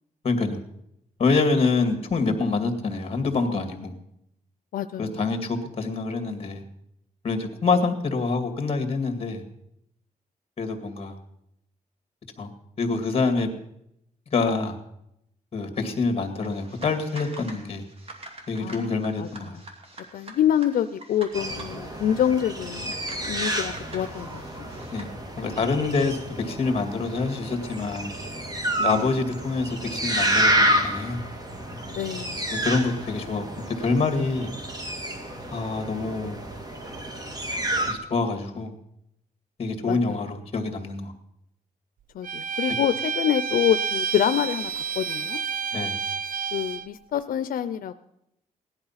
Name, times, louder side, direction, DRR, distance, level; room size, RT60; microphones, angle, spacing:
voice 1, 0.2-0.6 1.2-3.9 5.0-6.6 7.2-9.4 10.6-11.2 12.4-12.5 12.8-13.5 14.3-14.8 15.5-17.8 18.5-19.6 24.9-25.1 25.4-28.1 28.8-31.2 32.5-34.5 35.5-36.4 37.9-38.7 39.6-41.1 45.7-46.0, left 4 dB, 40° left, 8 dB, 2.0 m, -26 dB
voice 2, 4.7-5.2 18.6-19.3 19.5-19.6 20.1-22.9 23.2-24.7 28.8-29.1 31.9-32.4 39.8-40.2 42.1-45.4 46.5-48.0, left 10 dB, 85° left, 11 dB, 0.5 m, -26 dB
sound 1, 16.4-25.1, right 2 dB, 40° right, 2.5 m, -45 dB
sound 2, 21.3-37.9, right 1 dB, 25° right, 1.7 m, -29 dB
Bowed string instrument, 42.2-46.9, right 6 dB, 70° right, 0.4 m, -29 dB
17.5 x 11.5 x 5.8 m, 0.80 s
wide cardioid pair, 140°, 15 cm